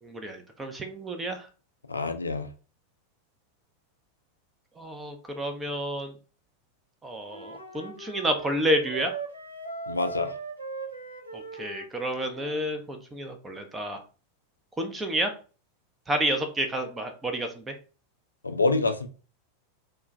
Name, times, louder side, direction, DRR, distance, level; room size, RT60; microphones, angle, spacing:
voice 1, 0.0-1.5 4.8-6.2 7.0-9.2 11.3-14.0 14.8-15.4 16.1-17.8, right 1 dB, 15° right, 6 dB, 0.5 m, -30 dB
voice 2, 1.9-2.5 9.9-10.4 18.4-19.1, left 3 dB, 85° left, 8 dB, 0.3 m, -26 dB
Wind instrument woodwind instrument, 7.3-12.7, right 3 dB, 90° right, 0.5 m, -39 dB
2.2 x 2.1 x 3.8 m, 0.37 s
figure-of-eight pair, 90°, 0 cm